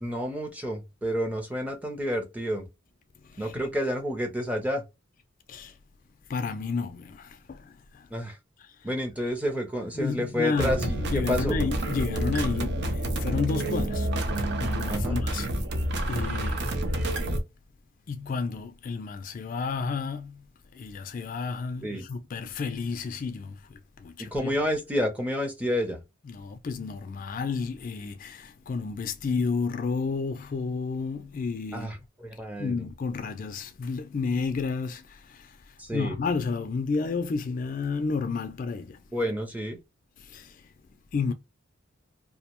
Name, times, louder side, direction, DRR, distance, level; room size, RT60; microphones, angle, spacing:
voice 1, 0.0-2.7 3.4-4.8 8.1-8.4 8.8-11.6 14.9-15.2 21.8-22.0 24.3-26.0 31.7-32.9 35.8-36.2 39.1-39.8, equal, 10° right, 0.5 m, -29 dB
voice 2, 6.3-8.1 9.9-14.3 14.6-15.5 16.1-16.7 18.1-20.4 20.7-24.5 26.3-31.9 32.6-35.5 35.9-39.0 40.2-40.6 41.1-41.3, left 4 dB, 45° left, 0.3 m, -31 dB
sound 1, 10.6-17.4, right 1 dB, 60° right, 0.5 m, -28 dB
2.6 x 2.0 x 2.9 m
head